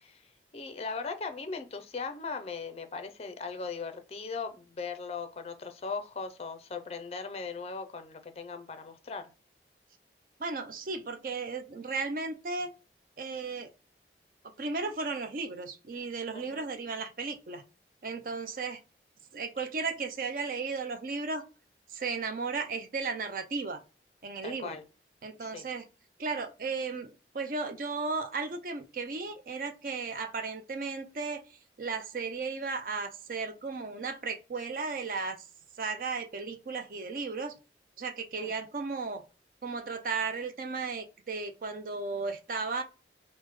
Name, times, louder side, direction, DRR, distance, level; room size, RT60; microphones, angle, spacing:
voice 1, 0.0-9.3 16.3-16.6 24.4-24.8 25.4-25.7 38.4-38.5, left 4 dB, 35° left, 0.4 m, -39 dB
voice 2, 10.4-12.7 13.2-13.7 14.6-17.6 18.0-18.8 19.3-21.4 21.9-23.8 24.2-24.8 25.2-25.9 26.2-31.4 31.8-35.4 35.8-37.5 38.0-39.2 39.6-42.8, right 4 dB, 50° right, 0.5 m, -35 dB
3.4 x 2.0 x 3.1 m
head